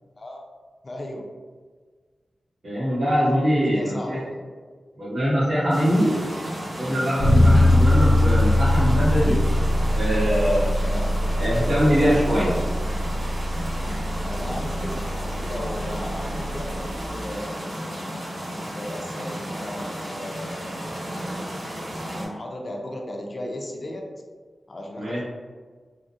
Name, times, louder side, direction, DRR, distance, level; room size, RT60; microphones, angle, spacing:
voice 1, 0.8-1.2 3.1-4.5 10.8-11.2 14.2-17.5 18.5-21.3 22.0-24.0 24.7-25.2, left 1 dB, 40° left, 0 dB, 0.4 m, -36 dB
voice 2, 2.6-4.2 5.0-6.2 6.8-9.4 9.9-10.7 11.4-12.5 25.0-25.2, equal, 75° right, -13 dB, 1.1 m, -22 dB
sound 1, 5.7-22.3, equal, 50° right, 1.4 m, -33 dB
Bass guitar, 7.2-17.0, left 1 dB, 70° left, 0.7 m, -22 dB
3.5 x 2.0 x 2.6 m, 1.5 s
wide cardioid pair, 120°, 0 cm